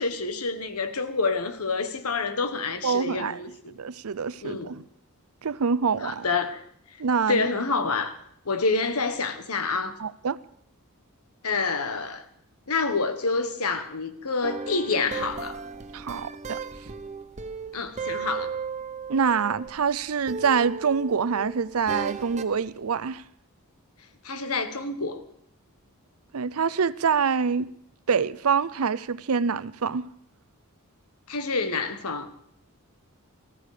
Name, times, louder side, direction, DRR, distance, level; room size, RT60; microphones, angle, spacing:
voice 1, 0.0-3.5 4.4-4.7 6.0-6.6 7.3-8.1 8.4-10.0 11.4-12.2 12.7-15.6 17.7-18.5 24.2-25.2 31.3-32.3, left 4 dB, 85° left, 1.5 m, -27 dB
voice 2, 2.8-3.4 3.8-4.8 5.4-6.3 7.0-7.4 10.0-10.4 15.9-16.6 19.1-23.2 26.3-27.7 28.1-30.1, right 6 dB, 75° right, 0.6 m, -25 dB
sound 1, 14.4-19.9 20.3-22.6, right 5 dB, 30° right, 0.8 m, -36 dB
19.0 x 14.5 x 5.1 m
head